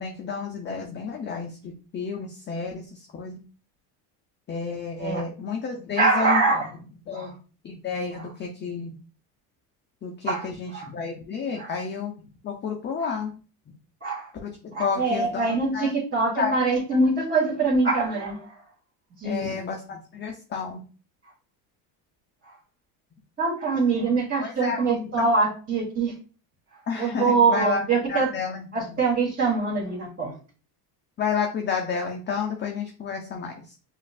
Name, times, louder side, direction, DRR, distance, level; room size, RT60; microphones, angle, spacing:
voice 1, 0.0-3.4 4.5-6.6 7.1-7.4 7.6-9.0 10.0-13.3 13.7-13.8 14.4-15.9 16.4-16.6 19.2-20.8 24.4-25.3 26.9-29.0 31.2-33.7, left 5 dB, 25° left, 1 dB, 0.5 m, -31 dB
voice 2, 6.0-6.7 7.1-7.3 10.2-10.5 10.7-10.8 11.6-11.7 13.0-13.1 14.0-14.3 14.7-18.4 19.2-19.5 23.4-26.1 27.0-28.3 28.7-30.3, right 3 dB, 25° right, -8 dB, 1.7 m, -24 dB
5.0 x 2.6 x 2.4 m, 0.37 s
supercardioid pair, 115°, 46 cm